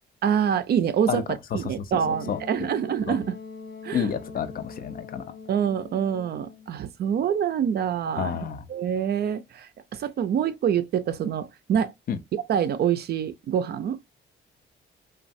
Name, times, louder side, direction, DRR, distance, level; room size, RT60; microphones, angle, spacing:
voice 1, 0.2-1.2 1.5-3.4 3.8-4.1 5.5-8.4 8.7-11.9 12.5-14.0, right 8 dB, 55° right, 0.4 m, -26 dB
voice 2, 1.5-2.4 3.1-3.2 3.9-5.2 8.2-8.7 12.1-12.2, left 8 dB, 45° left, 0.4 m, -30 dB
Wind instrument woodwind instrument, 1.9-6.7, left 4 dB, 80° left, 1.1 m, -42 dB
3.1 x 2.2 x 2.6 m
cardioid pair, 90°, 20 cm